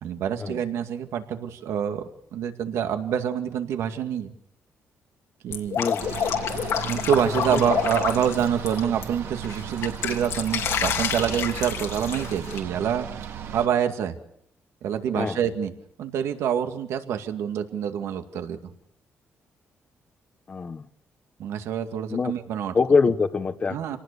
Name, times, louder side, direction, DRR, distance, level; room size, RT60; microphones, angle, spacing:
voice 1, 0.0-2.0 2.3-4.3 5.4-5.9 6.1-6.2 6.9-13.1 13.5-14.1 14.8-15.7 16.0-18.6 21.4-22.7 23.7-24.0, right 8 dB, 90° right, 7 dB, 2.1 m, -26 dB
Drip, 5.5-9.0 9.4-12.6, left 8 dB, 80° left, 2.7 m, -28 dB
sound 1, 6.0-13.7, right 8 dB, 70° right, 1.9 m, -35 dB
voice 2, 20.5-20.8 22.1-22.3 22.7-23.8, left 4 dB, 30° left, 8 dB, 0.9 m, -23 dB
27.5 x 19.0 x 6.9 m, 0.67 s
cardioid pair, 150°, 5 cm